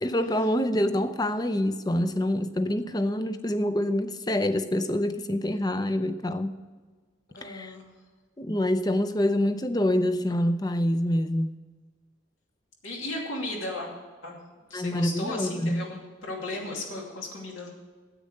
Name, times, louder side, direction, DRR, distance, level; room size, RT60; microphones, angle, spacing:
voice 1, 0.0-6.5 7.4-7.8 8.4-11.5 14.7-15.9, left 1 dB, 20° left, 10 dB, 0.5 m, -26 dB
voice 2, 7.3-7.9 12.8-13.9 14.2-14.4 14.7-17.7, left 2 dB, 80° left, 0 dB, 2.6 m, -35 dB
9.9 x 8.5 x 6.5 m, 1.4 s
head